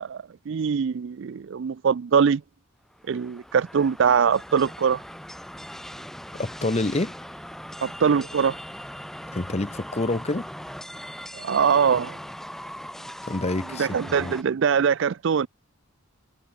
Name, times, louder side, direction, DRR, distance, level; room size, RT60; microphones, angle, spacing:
voice 1, 0.0-2.4 3.1-5.0 7.8-8.6 11.3-12.2 13.8-15.5, right 6 dB, 60° right, 0.4 m, -22 dB
sound 1, 2.9-14.4, equal, ahead, 2.5 m, -40 dB
voice 2, 6.3-7.1 9.3-10.5 13.3-13.9 14.2-14.3, left 2 dB, 30° left, 0.8 m, -27 dB
head